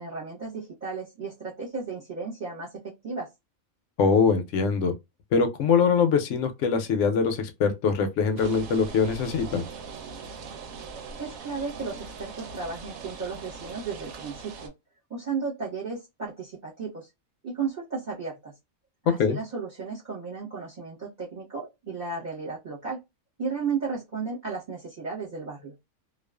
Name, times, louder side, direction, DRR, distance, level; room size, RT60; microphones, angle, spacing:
voice 1, 0.0-3.3 11.2-14.7 15.1-17.1 17.4-18.5 19.1-23.0 23.4-25.7, right 5 dB, 40° right, 0.9 m, -34 dB
voice 2, 4.0-4.9 5.3-9.6 19.2-19.4, left 5 dB, 70° left, 0.8 m, -23 dB
sound 1, 8.4-14.7, right 4 dB, 80° right, 1.0 m, -41 dB
2.4 x 2.3 x 2.2 m
omnidirectional pair, 1.4 m